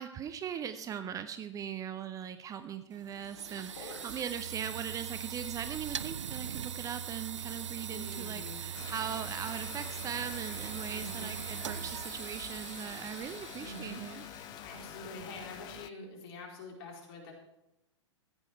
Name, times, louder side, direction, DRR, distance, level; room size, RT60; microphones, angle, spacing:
voice 1, 0.0-14.3, right 8 dB, 20° right, 11 dB, 0.7 m, -40 dB
sound 1, 2.9-15.7, right 8 dB, 75° right, 0.5 m, -41 dB
voice 2, 3.7-4.2 7.9-8.6 10.9-11.3 13.6-14.0 14.6-17.3, left 2 dB, 50° left, 0 dB, 4.2 m, -46 dB
sound 2, 8.7-15.9, left 15 dB, 25° left, 0.4 m, -47 dB
14.5 x 9.1 x 4.6 m, 0.91 s
figure-of-eight pair, 105°, 16 cm